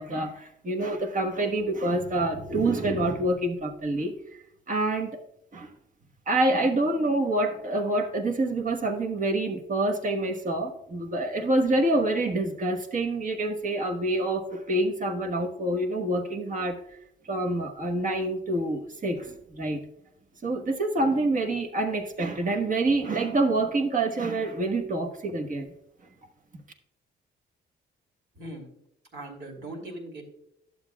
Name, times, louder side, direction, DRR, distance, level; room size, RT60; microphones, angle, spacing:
voice 1, 0.0-4.1 4.7-5.2 5.5-5.7 6.3-16.8 17.2-19.8 20.4-25.7, right 2 dB, 40° right, 4 dB, 1.2 m, -27 dB
voice 2, 28.3-28.7 29.1-30.3, right 1 dB, 65° right, 1 dB, 2.7 m, -40 dB
11.5 x 7.2 x 2.3 m, 0.76 s
cardioid pair, 90°, 20 cm